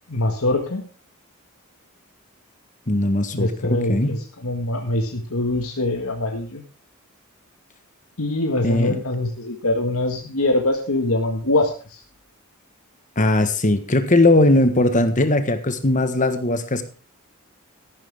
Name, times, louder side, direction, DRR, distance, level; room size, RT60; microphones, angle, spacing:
voice 1, 0.1-0.9 3.3-6.6 8.2-12.0, left 2 dB, 80° left, 3 dB, 1.9 m, -23 dB
voice 2, 2.9-4.1 8.6-9.0 13.2-16.8, left 2 dB, 35° left, 10 dB, 1.5 m, -19 dB
14.0 x 12.0 x 3.6 m, 0.35 s
head